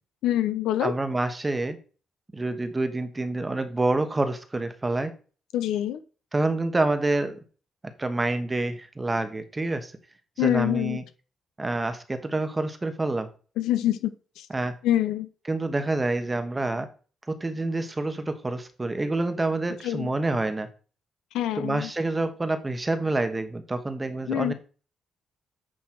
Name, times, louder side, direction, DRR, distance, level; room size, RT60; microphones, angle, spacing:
voice 1, 0.2-0.9 5.5-6.0 10.4-11.0 13.6-14.5 14.8-15.3 19.8-20.1 21.3-21.9 24.3-24.5, left 12 dB, 85° left, 12 dB, 0.7 m, -25 dB
voice 2, 0.8-1.8 2.3-5.1 6.3-7.4 8.0-9.9 10.4-11.0 11.6-13.3 14.5-14.7 15.5-16.9 17.3-20.7 21.5-24.5, right 2 dB, 20° right, 9 dB, 1.2 m, -27 dB
8.8 x 3.2 x 5.9 m, 0.37 s
cardioid pair, 90°, 0 cm